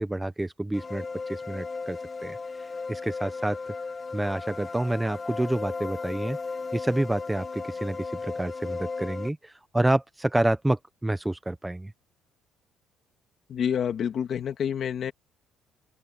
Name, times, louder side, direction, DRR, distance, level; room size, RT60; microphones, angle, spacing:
voice 1, 0.0-2.4 2.9-3.7 4.1-6.4 6.7-11.9, right 1 dB, 5° right, 0.7 m, -28 dB
sound 1, 0.7-9.3, left 4 dB, 20° left, 1.4 m, -35 dB
voice 2, 13.5-15.1, left 8 dB, 40° left, 1.9 m, -28 dB
open air
cardioid pair, 160°, 0 cm